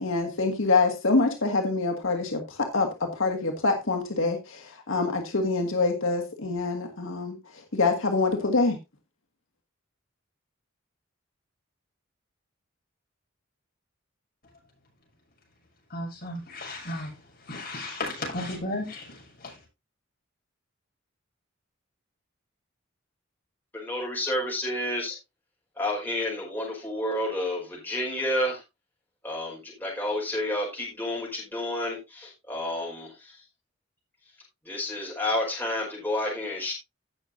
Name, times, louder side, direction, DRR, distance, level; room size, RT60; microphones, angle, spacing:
voice 1, 0.0-7.4 7.7-8.8, left 3 dB, 75° left, 1.6 m, -25 dB
voice 2, 15.9-17.1 17.5-19.5, left 1 dB, 45° left, 6.4 m, -34 dB
voice 3, 23.7-25.2 25.8-28.6 29.2-33.4 34.6-36.7, left 1 dB, 10° left, 4.8 m, -30 dB
17.0 x 6.4 x 2.7 m
head